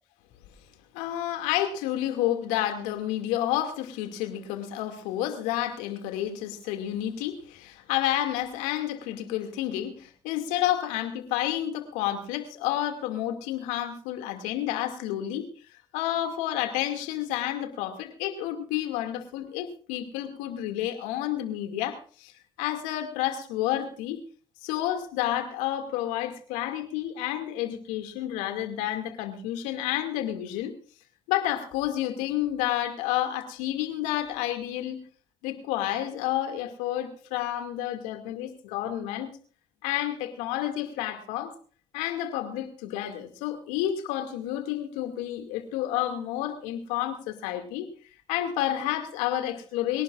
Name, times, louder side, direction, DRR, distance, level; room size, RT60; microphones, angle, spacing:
voice 1, 0.9-15.5 15.9-22.3 22.6-24.2 24.6-30.8 31.3-35.0 35.4-39.3 39.8-41.5 41.9-47.9 48.3-50.0, left 12 dB, 75° left, 6 dB, 2.4 m, -30 dB
24.0 x 18.0 x 2.5 m, 0.41 s
hypercardioid pair, 50°, 13 cm